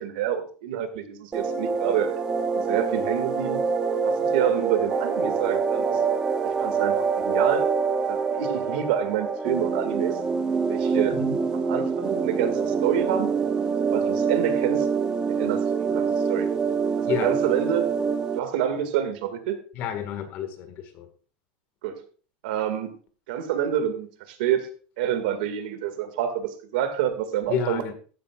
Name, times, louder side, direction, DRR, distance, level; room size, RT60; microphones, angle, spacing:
voice 1, 0.0-2.2 2.7-3.6 4.0-6.0 6.4-6.9 7.2-7.7 8.1-10.2 10.7-11.2 11.5-13.4 13.7-14.9 15.3-16.5 17.0-17.9 18.3-19.6 21.8-22.0 22.4-22.9 23.3-24.7 25.0-27.8, right 10 dB, 75° right, 8 dB, 2.0 m, -28 dB
sound 1, 1.3-18.4, right 5 dB, 15° right, 0.6 m, -25 dB
voice 2, 19.8-21.1 27.5-27.9, left 7 dB, 40° left, 8 dB, 1.8 m, -30 dB
14.5 x 10.5 x 2.4 m, 0.40 s
supercardioid pair, 175°, 5 cm